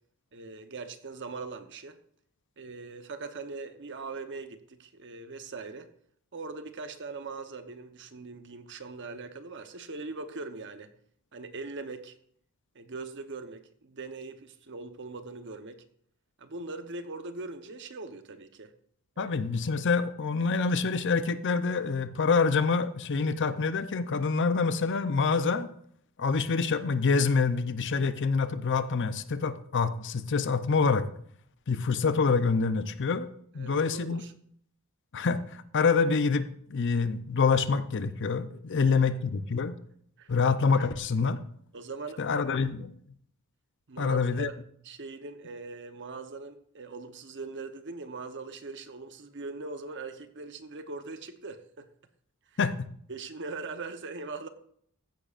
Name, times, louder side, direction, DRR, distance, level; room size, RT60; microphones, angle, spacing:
voice 1, 0.3-2.0 2.6-5.9 6.3-10.9 11.3-12.2 12.7-15.8 16.4-18.7 19.2-19.3 33.6-34.3 40.2-40.3 41.7-42.2 43.9-44.6 44.8-51.9 52.5-52.6 53.1-54.5, right 3 dB, 55° right, 8 dB, 0.9 m, -41 dB
voice 2, 19.2-25.7 26.2-31.1 31.7-33.3 33.5-34.2 35.1-39.7 40.3-41.4 42.2-42.9 44.0-44.5 52.6-52.9, left 4 dB, 55° left, 12 dB, 0.6 m, -26 dB
15.0 x 10.5 x 2.5 m, 0.65 s
head